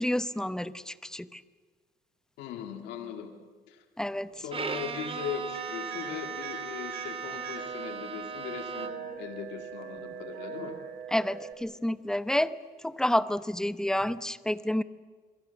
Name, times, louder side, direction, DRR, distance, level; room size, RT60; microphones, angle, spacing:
voice 1, 0.0-1.4 4.0-4.3 11.1-12.5 12.8-14.8, left 1 dB, 5° left, 14 dB, 0.8 m, -29 dB
voice 2, 2.4-3.3 3.7-3.8 4.4-8.9 9.2-10.7, left 8 dB, 90° left, 5 dB, 2.4 m, -39 dB
Bowed string instrument, 4.5-9.2, right 5 dB, 35° right, 2.3 m, -38 dB
sound 1, 5.5-11.5, right 8 dB, 65° right, 4.2 m, -41 dB
27.5 x 23.0 x 7.1 m, 1.5 s
cardioid pair, 110°, 17 cm